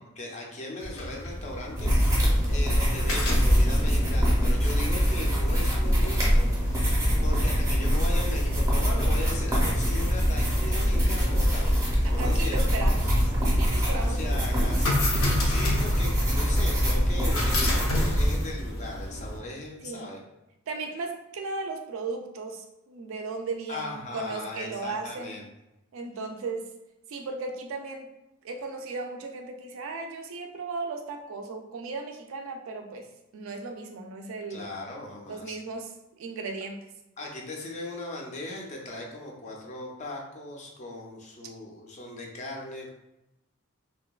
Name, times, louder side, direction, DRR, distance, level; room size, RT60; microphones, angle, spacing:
voice 1, 0.2-12.9 13.8-20.2 23.7-25.5 34.5-35.6 37.2-42.9, left 2 dB, 35° left, -1 dB, 0.5 m, -38 dB
sound 1, 0.8-19.4, left 1 dB, 75° left, 0.6 m, -32 dB
sound 2, 1.8-18.4, equal, 15° right, 0.6 m, -24 dB
voice 2, 12.0-15.0 19.8-20.1 20.7-25.4 25.9-26.7 27.1-28.1 28.4-33.0 33.3-34.7 35.3-35.9 36.2-36.8, right 3 dB, 75° right, 4 dB, 0.4 m, -36 dB
2.6 x 2.2 x 2.3 m, 0.93 s
head